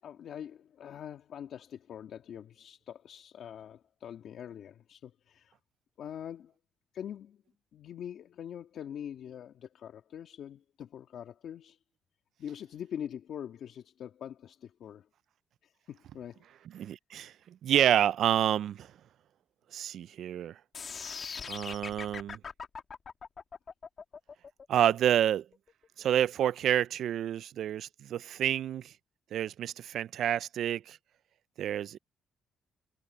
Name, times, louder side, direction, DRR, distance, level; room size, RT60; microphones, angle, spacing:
voice 1, 0.0-5.6 6.0-6.5 6.9-7.4 7.7-11.8 12.4-15.1 15.6-16.5, left 9 dB, 70° left, 2.0 m, -43 dB
voice 2, 16.7-18.9 19.7-20.6 21.5-22.4 24.7-25.5 26.0-28.9 29.3-31.0 31.6-32.0, right 10 dB, 70° right, 0.3 m, -28 dB
sound 1, 20.7-26.8, left 5 dB, 45° left, 2.1 m, -42 dB
cardioid pair, 90°, 0 cm